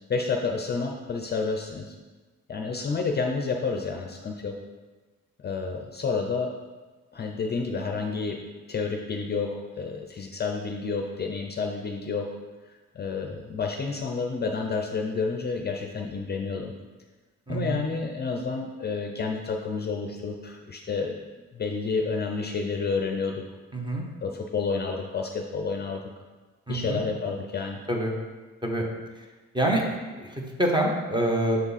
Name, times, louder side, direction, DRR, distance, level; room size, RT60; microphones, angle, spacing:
voice 1, 0.0-1.9 2.5-4.6 5.4-6.5 7.1-8.4 8.7-12.3 12.7-16.7 17.5-21.1 21.5-23.4 24.2-26.0 26.7-27.8, left 4 dB, 35° left, 2 dB, 0.5 m, -30 dB
voice 2, 17.5-17.8 23.7-24.0 26.7-27.0 27.9-28.1 28.6-28.8 29.2-29.3 29.5-31.6, right 1 dB, 15° right, 0 dB, 1.0 m, -26 dB
6.8 x 3.6 x 4.1 m, 1.3 s
cardioid pair, 90°, 30 cm